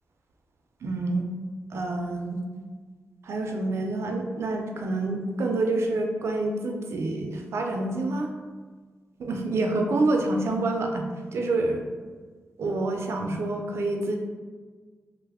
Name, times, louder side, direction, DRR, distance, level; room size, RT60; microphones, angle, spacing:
voice 1, 0.8-1.3 1.7-2.4 3.2-8.3 9.2-11.8 12.6-14.2, right 2 dB, 70° right, 2 dB, 0.4 m, -27 dB
3.1 x 2.0 x 3.4 m, 1.5 s
wide cardioid pair, 100°, 5 cm